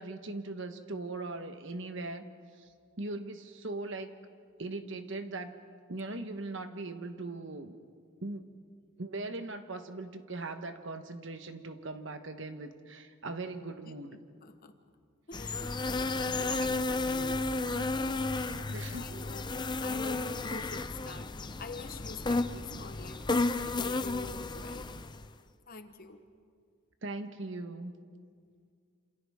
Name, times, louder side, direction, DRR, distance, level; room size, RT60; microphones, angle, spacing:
voice 1, 0.0-2.3 2.6-2.7 3.0-4.1 4.6-5.6 5.9-7.8 8.2-8.4 9.0-14.2 16.5-16.8 18.7-19.0 27.0-28.0, right 2 dB, 60° right, 8 dB, 1.2 m, -40 dB
voice 2, 14.4-14.8 15.3-18.2 18.9-19.5 19.8-24.9 25.7-26.2, left 3 dB, 45° left, 8 dB, 1.1 m, -47 dB
sound 1, 15.3-25.3, left 3 dB, 20° left, 0.5 m, -33 dB
27.5 x 27.5 x 3.6 m, 2.1 s
head